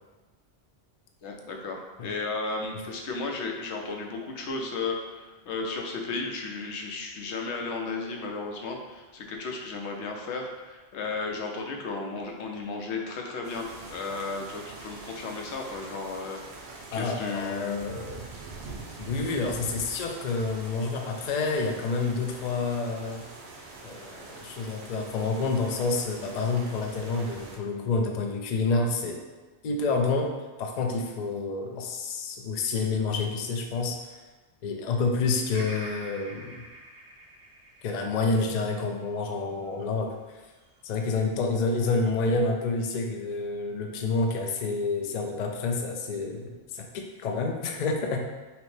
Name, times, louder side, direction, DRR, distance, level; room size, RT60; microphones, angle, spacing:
voice 1, 1.2-16.4 16.9-17.7, left 3 dB, 85° left, 1 dB, 0.9 m, -34 dB
sound 1, 13.4-27.6, right 3 dB, 80° right, 1.0 m, -44 dB
voice 2, 16.9-18.3 19.0-23.2 23.8-29.2 29.6-30.3 30.6-34.2 34.6-36.6 37.8-40.1 40.8-48.2, left 3 dB, 55° left, 3 dB, 0.5 m, -28 dB
Bird vocalization bird call bird song, 35.5-39.7 40.3-41.0, right 1 dB, 55° right, 0.8 m, -45 dB
5.7 x 2.1 x 3.1 m, 1.2 s
omnidirectional pair, 1.1 m